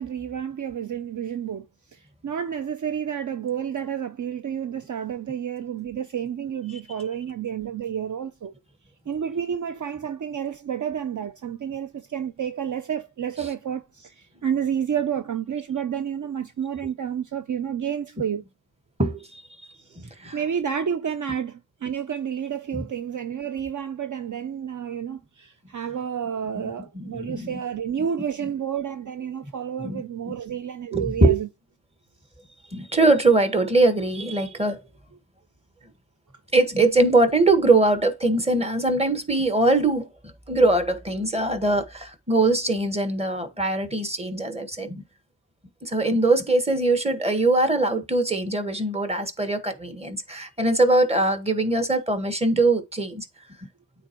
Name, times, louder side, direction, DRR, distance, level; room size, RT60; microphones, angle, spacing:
voice 1, 0.0-1.7 1.9-8.5 9.1-18.4 19.9-31.5, right 8 dB, 50° right, 0.7 m, -30 dB
voice 2, 19.0-19.4 20.0-20.4 26.5-26.6 26.9-27.6 29.8-30.3 30.9-31.4 32.7-34.8 36.5-40.1 40.5-45.0 45.8-53.2, right 2 dB, 15° right, 1.6 m, -22 dB
8.8 x 4.4 x 3.1 m
cardioid pair, 45°, 39 cm